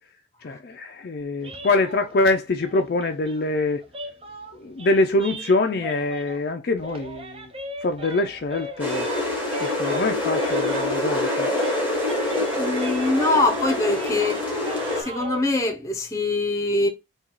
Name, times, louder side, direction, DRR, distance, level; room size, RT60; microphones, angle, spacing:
voice 1, 0.4-3.8 4.5-7.5 7.8-9.1 9.6-11.5, left 2 dB, 50° left, 0.4 m, -24 dB
sound 1, 1.4-6.5 6.8-11.3 11.5-15.4, right 1 dB, 30° right, 0.5 m, -38 dB
sound 2, 8.8-15.0, left 2 dB, 10° right, 1.5 m, -25 dB
voice 2, 12.5-14.4 14.7-16.9, left 2 dB, 15° left, 0.8 m, -23 dB
3.8 x 2.3 x 4.4 m
head